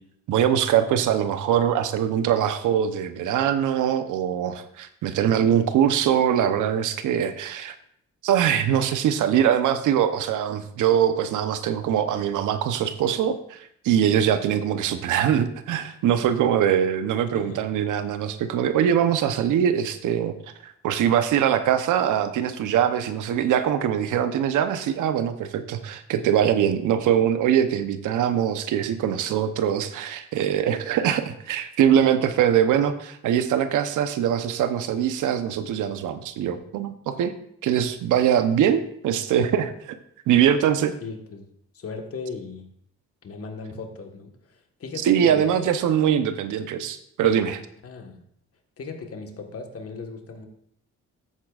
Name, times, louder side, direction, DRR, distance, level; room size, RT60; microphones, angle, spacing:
voice 1, 0.3-7.7 8.2-20.4 20.6-37.3 37.6-40.0 40.3-40.9 45.0-47.6, right 9 dB, 80° right, 10 dB, 0.9 m, -22 dB
voice 2, 41.0-41.5 41.7-42.7 43.2-45.8 47.8-48.2 48.8-50.5, left 4 dB, 50° left, 4 dB, 1.5 m, -37 dB
14.0 x 8.3 x 2.5 m, 0.69 s
cardioid pair, 90°, 30 cm